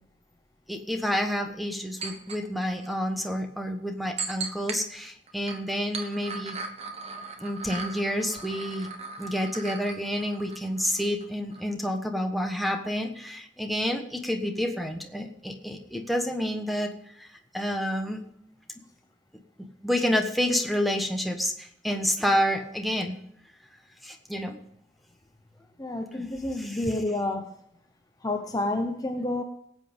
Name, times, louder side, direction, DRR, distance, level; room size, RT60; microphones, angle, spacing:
voice 1, 0.7-6.6 7.4-8.9 9.2-16.9 17.2-17.3 17.5-18.2 19.8-23.2 24.0-24.6 26.1-26.2 26.6-26.8, equal, ahead, 5 dB, 1.3 m, -29 dB
sound 1, 2.0-2.4 2.8-2.9 4.2-4.8 5.3-11.3 11.5-11.6, right 4 dB, 35° right, 1.3 m, -38 dB
voice 2, 25.8-27.5 28.2-29.4, left 2 dB, 20° left, 4 dB, 0.8 m, -29 dB
18.5 x 8.2 x 5.3 m, 0.72 s
head